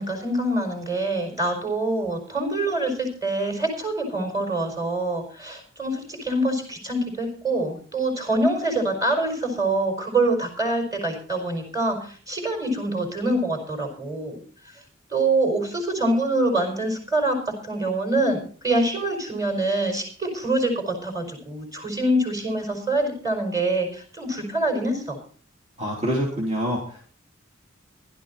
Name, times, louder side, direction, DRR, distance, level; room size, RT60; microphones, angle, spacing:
voice 1, 0.0-14.4 15.1-25.2, right 2 dB, 15° right, 3 dB, 4.7 m, -25 dB
voice 2, 25.8-27.2, equal, 35° right, -3 dB, 3.2 m, -26 dB
15.5 x 12.5 x 4.2 m, 0.42 s
head